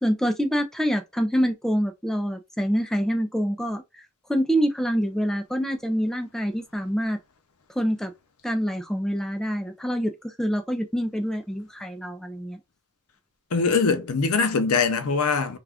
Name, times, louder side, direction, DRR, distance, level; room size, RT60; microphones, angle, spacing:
voice 1, 0.0-3.8 4.3-7.2 7.8-8.1 8.4-12.6, equal, ahead, 0.4 m, -26 dB
voice 2, 13.5-15.6, left 4 dB, 85° left, 0.6 m, -22 dB
2.4 x 2.3 x 3.4 m
head